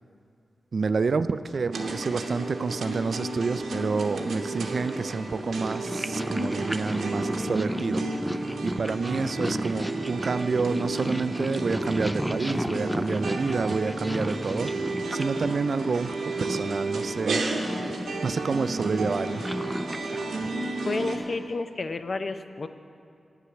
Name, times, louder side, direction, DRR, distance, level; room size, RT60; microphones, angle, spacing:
voice 1, 0.7-8.4 8.6-17.4 18.2-19.4, right 4 dB, 70° right, 13 dB, 0.3 m, -29 dB
sound 1, 1.7-21.2, right 2 dB, 90° right, 0.9 m, -33 dB
Purr, 3.8-21.5, equal, ahead, 0.4 m, -34 dB
voice 2, 20.8-22.7, left 3 dB, 60° left, 9 dB, 0.5 m, -31 dB
9.1 x 8.4 x 7.0 m, 2.4 s
cardioid pair, 45°, 0 cm